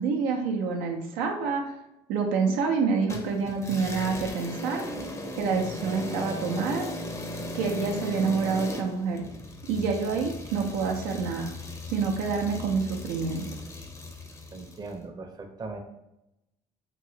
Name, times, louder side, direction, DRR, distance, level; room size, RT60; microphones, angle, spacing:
voice 1, 0.0-1.7 2.1-4.8 5.4-6.9 7.5-9.2 9.7-11.5 11.9-13.5, right 5 dB, 85° right, 1 dB, 0.5 m, -27 dB
sound 1, 3.1-14.9, left 2 dB, 20° left, 0.6 m, -37 dB
voice 2, 14.5-15.8, right 3 dB, 30° right, 4 dB, 0.6 m, -39 dB
3.0 x 2.7 x 2.7 m, 0.88 s
supercardioid pair, 75°, 14 cm